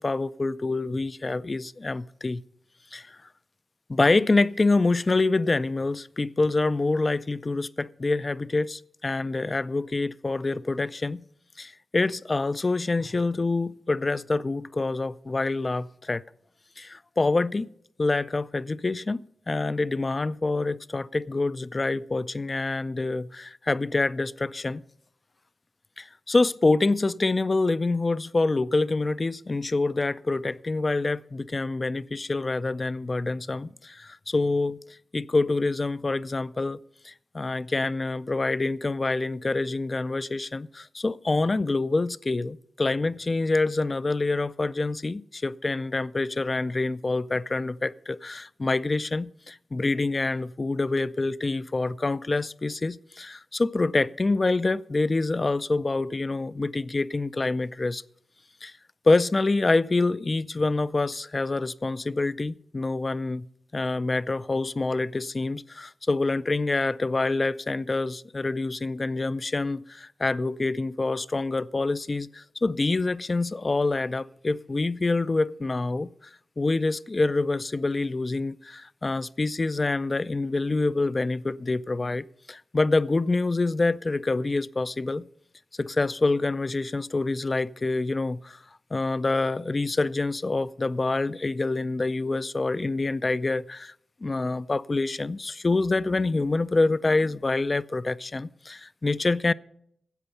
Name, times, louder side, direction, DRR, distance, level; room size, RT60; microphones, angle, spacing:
voice 1, 0.0-2.4 2.9-3.2 3.9-11.2 11.6-16.2 16.8-17.7 18.0-24.8 26.0-34.8 35.1-36.8 37.0-58.0 58.6-58.7 59.1-63.5 63.7-76.1 76.6-85.3 85.8-88.6 88.9-93.9 94.2-99.5, left 3 dB, 35° left, 0.4 m, -26 dB
13.0 x 8.0 x 5.6 m
cardioid pair, 50°, 0 cm